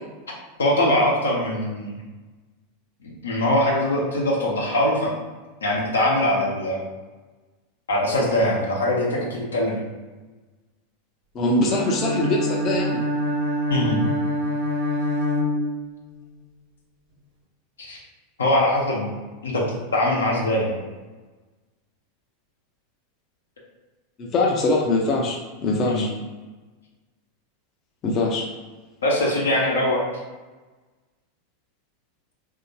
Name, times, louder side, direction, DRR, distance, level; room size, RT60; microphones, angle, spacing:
voice 1, 0.6-2.0 3.0-5.1 5.6-6.8 7.9-9.8 13.7-14.0 17.8-18.0 18.4-19.1 19.4-20.8 25.9-26.0 29.0-30.0, left 1 dB, 80° left, -3 dB, 0.9 m, -22 dB
voice 2, 11.3-13.0 24.2-26.1 28.0-28.5, left 2 dB, 35° left, -1 dB, 0.5 m, -22 dB
Bowed string instrument, 11.6-16.2, equal, 60° right, 0.9 m, -25 dB
3.4 x 2.7 x 2.7 m, 1.2 s
figure-of-eight pair, 90°, 0 cm